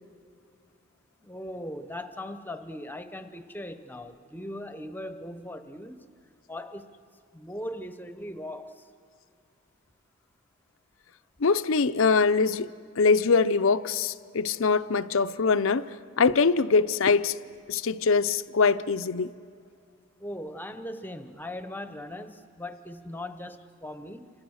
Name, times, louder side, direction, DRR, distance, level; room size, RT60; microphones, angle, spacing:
voice 1, 1.2-6.0 6.5-6.9 7.3-8.8 20.2-24.3, left 1 dB, 10° left, 0.8 m, -39 dB
voice 2, 11.4-17.4 17.7-19.3, left 4 dB, 75° left, 0.6 m, -23 dB
28.0 x 26.5 x 6.4 m
head